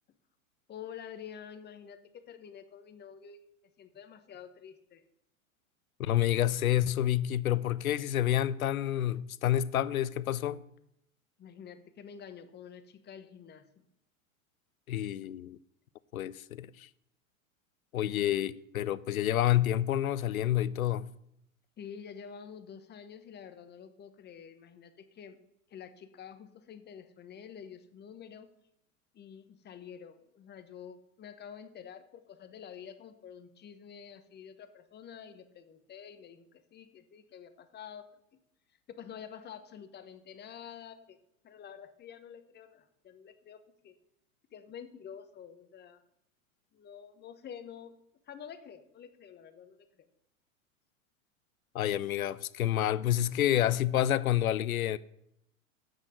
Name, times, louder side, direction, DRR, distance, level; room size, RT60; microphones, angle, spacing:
voice 1, 0.7-3.4 3.8-5.1 11.4-13.8 15.2-15.3 21.8-25.4 25.7-28.5 29.1-38.1 38.9-41.2 41.4-44.0 44.5-46.0 46.7-48.0 48.3-50.1, left 8 dB, 25° left, 1.0 m, -48 dB
voice 2, 6.0-10.6 14.9-15.6 16.1-16.9 17.9-21.1 51.7-55.0, left 12 dB, 90° left, 0.6 m, -28 dB
7.9 x 6.2 x 7.7 m
hypercardioid pair, 105°, 41 cm